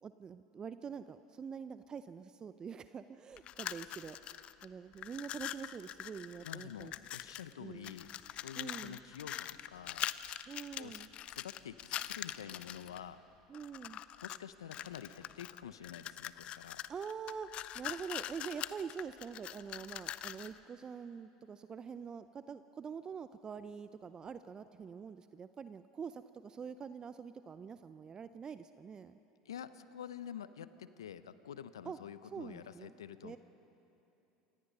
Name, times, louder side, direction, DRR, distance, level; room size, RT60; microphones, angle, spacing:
voice 1, 0.0-6.9 7.6-7.9 8.6-9.0 10.5-11.1 13.5-14.0 16.9-29.2 31.8-32.0 32.3-32.9 33.2-33.4, right 6 dB, 30° right, 12 dB, 0.5 m, -45 dB
sound 1, 3.4-4.7 4.9-7.5 7.8-13.0 13.5-14.4 14.7-20.6, left 12 dB, 45° left, 0.6 m, -43 dB
voice 2, 6.4-10.0 10.8-13.2 14.2-16.8 29.4-33.4, left 9 dB, 85° left, 14 dB, 0.7 m, -48 dB
27.0 x 18.0 x 5.5 m, 2.9 s
hypercardioid pair, 80°, 3 cm